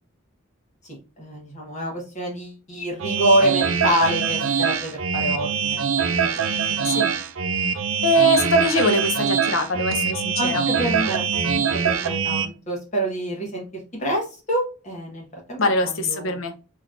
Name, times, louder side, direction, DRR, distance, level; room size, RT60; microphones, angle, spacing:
voice 1, 0.8-7.0 10.4-13.6 13.9-16.4, right 1 dB, 35° left, -1 dB, 1.3 m, -27 dB
sound 1, 3.0-12.5, right 6 dB, 85° right, 0.6 m, -23 dB
voice 2, 8.0-10.6 15.6-16.5, left 1 dB, 80° left, 7 dB, 0.8 m, -22 dB
3.8 x 3.1 x 2.4 m, 0.32 s
head